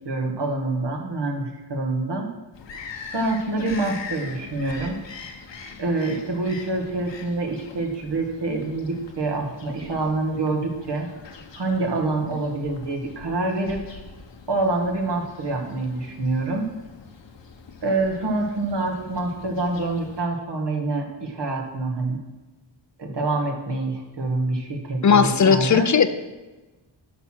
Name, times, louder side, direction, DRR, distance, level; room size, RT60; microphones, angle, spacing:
voice 1, 0.1-2.3 3.1-5.0 5.8-11.1 11.5-13.8 14.5-16.6 17.8-22.2 23.0-25.9, right 2 dB, 65° right, 2 dB, 1.9 m, -26 dB
Bird vocalization bird call bird song, 2.5-20.2, left 5 dB, 70° left, 1.3 m, -42 dB
voice 2, 25.0-26.1, left 6 dB, 40° left, 11 dB, 0.7 m, -17 dB
11.0 x 6.0 x 6.2 m, 1.1 s
wide cardioid pair, 105°, 45 cm